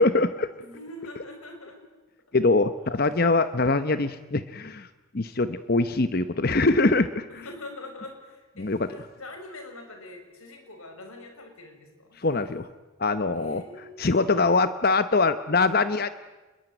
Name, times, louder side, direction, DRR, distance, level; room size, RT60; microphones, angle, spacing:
voice 1, 0.0-0.5 2.3-4.9 5.1-7.3 8.6-8.9 12.2-12.7 13.0-13.6 14.0-16.1, left 3 dB, 45° left, 12 dB, 0.8 m, -23 dB
voice 2, 0.6-1.8 7.3-12.2 13.3-14.0, left 2 dB, 90° left, 5 dB, 5.7 m, -43 dB
28.5 x 22.0 x 9.0 m, 1.2 s
head